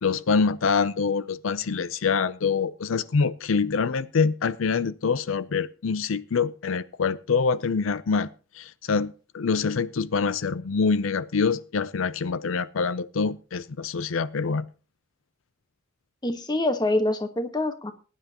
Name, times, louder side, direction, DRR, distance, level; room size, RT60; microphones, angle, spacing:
voice 1, 0.0-8.3 8.5-14.7, left 5 dB, 90° left, 0.5 m, -25 dB
voice 2, 16.2-17.9, left 1 dB, 20° left, 1.3 m, -25 dB
20.0 x 10.0 x 2.9 m
head